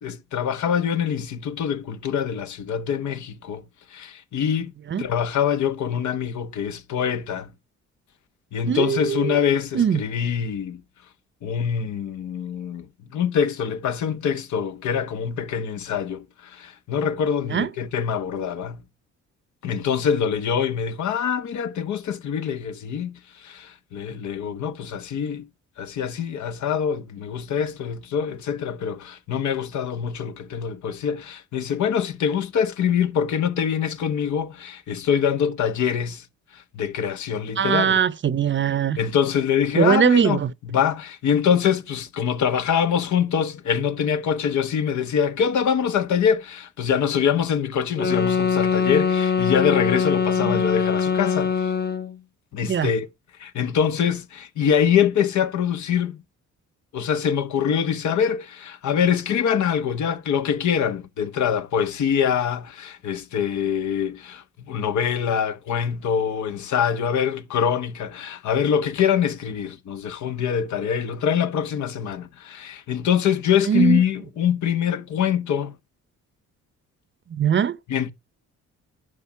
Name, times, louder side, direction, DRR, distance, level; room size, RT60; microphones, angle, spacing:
voice 1, 0.0-3.6 3.9-4.7 5.0-7.5 8.5-10.8 11.4-12.9 13.1-18.8 19.6-25.5 25.8-36.2 36.5-38.0 39.0-40.4 40.7-51.7 52.5-53.1 53.4-56.2 56.9-75.7 77.9-78.1, left 8 dB, 70° left, 1.1 m, -24 dB
voice 2, 8.7-9.4 9.7-10.0 17.5-17.7 37.6-39.0 39.7-40.5 50.4-50.6 52.7-52.9 73.7-74.0 77.3-77.8, right 8 dB, 40° right, 0.7 m, -21 dB
sound 1, 47.9-52.2, left 6 dB, 35° left, 0.9 m, -22 dB
11.5 x 5.1 x 5.8 m
cardioid pair, 90°, 30 cm